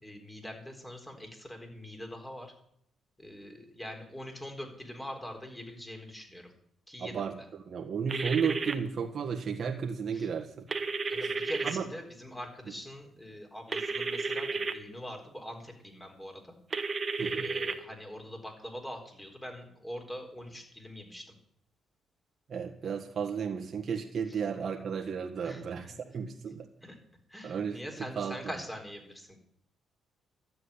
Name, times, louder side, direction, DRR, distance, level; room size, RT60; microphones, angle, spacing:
voice 1, 0.0-2.5 3.2-6.5 6.9-7.4 10.1-10.3 11.1-16.4 17.2-21.2 24.3-24.4 25.4-25.6 25.9-26.0 26.8-27.0 27.3-29.4, equal, 10° left, 3 dB, 4.1 m, -43 dB
voice 2, 7.0-7.3 7.7-10.6 11.6-11.8 17.2-17.5 22.5-26.6 27.4-27.8 28.2-28.4, right 6 dB, 50° right, 1 dB, 1.7 m, -33 dB
sound 1, 8.1-8.7 10.7-11.7 13.7-14.7 16.7-17.7, right 4 dB, 35° right, 1.3 m, -32 dB
13.0 x 7.7 x 9.9 m, 0.69 s
cardioid pair, 90°, 0 cm